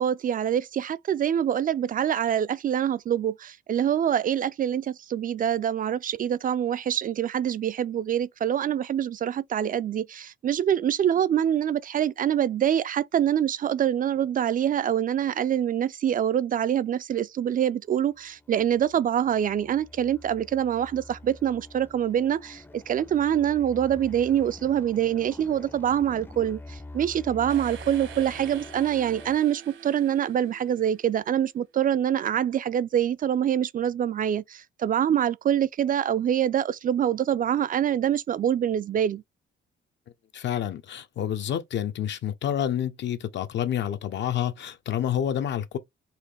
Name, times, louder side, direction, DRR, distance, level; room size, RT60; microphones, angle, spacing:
voice 1, 0.0-39.2, right 10 dB, 45° right, 0.4 m, -25 dB
sound 1, 18.0-29.4, left 2 dB, 10° left, 0.5 m, -45 dB
sound 2, 27.5-31.3, right 8 dB, 70° right, 1.1 m, -46 dB
voice 2, 40.3-45.8, left 10 dB, 65° left, 0.8 m, -28 dB
4.4 x 2.9 x 3.3 m
cardioid pair, 90°, 20 cm